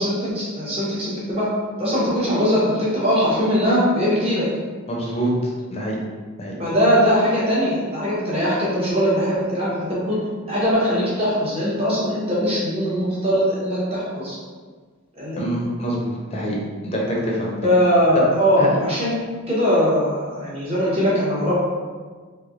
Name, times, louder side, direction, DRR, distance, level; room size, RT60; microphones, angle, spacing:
voice 1, 0.0-1.5 1.8-4.4 6.6-10.2 10.5-14.4 15.2-15.4 17.6-19.1 19.5-21.5, equal, 25° right, -8 dB, 1.1 m, -20 dB
voice 2, 4.9-5.3 5.7-6.0 6.4-6.6 15.4-16.6 16.8-17.7 18.6-18.7, right 1 dB, 30° left, -4 dB, 0.6 m, -25 dB
3.3 x 3.3 x 2.5 m, 1.5 s
head